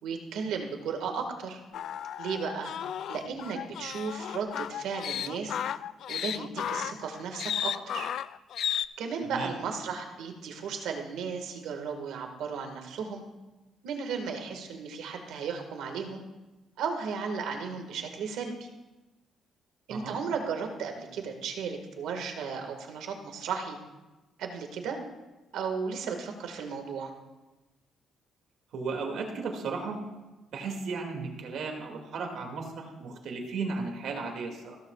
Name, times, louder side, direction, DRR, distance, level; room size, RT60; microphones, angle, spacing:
voice 1, 0.0-1.6 2.2-2.7 3.1-5.6 6.1-8.1 9.0-13.2 13.8-16.2 16.8-18.7 19.9-23.8 24.4-25.0 25.5-27.1, right 5 dB, 90° right, 4 dB, 1.8 m, -35 dB
sound 1, 1.7-8.9, left 10 dB, 65° left, 0.3 m, -34 dB
voice 2, 28.7-30.0 30.5-34.8, right 4 dB, 70° right, 2 dB, 2.3 m, -35 dB
15.5 x 13.5 x 2.4 m, 1.1 s
cardioid pair, 125°, 0 cm